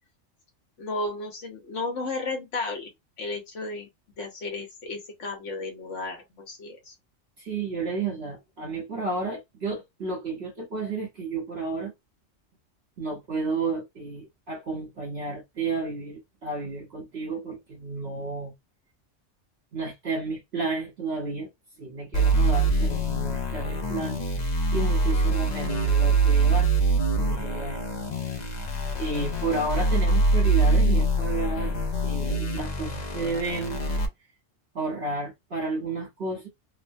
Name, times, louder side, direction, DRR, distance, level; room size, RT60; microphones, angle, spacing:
voice 1, 0.8-2.9 3.2-3.9 4.2-6.9, left 3 dB, 70° left, 1.3 m, -33 dB
voice 2, 7.4-11.9 13.0-18.5 19.7-21.5 21.8-26.7 27.2-27.8 29.0-33.9 34.7-36.5, right 3 dB, 55° right, 1.1 m, -32 dB
sound 1, 22.1-34.1, right 2 dB, 45° left, 0.6 m, -24 dB
3.2 x 2.1 x 2.5 m
omnidirectional pair, 1.3 m